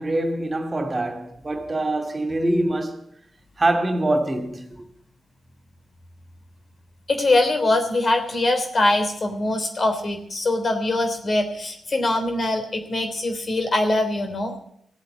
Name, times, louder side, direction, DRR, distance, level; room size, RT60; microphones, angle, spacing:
voice 1, 0.0-3.0 3.6-4.8, right 1 dB, 35° right, 2.5 m, -24 dB
voice 2, 7.1-14.5, left 2 dB, 50° left, 3.3 m, -22 dB
15.5 x 8.2 x 8.5 m
supercardioid pair, 40°, 0 cm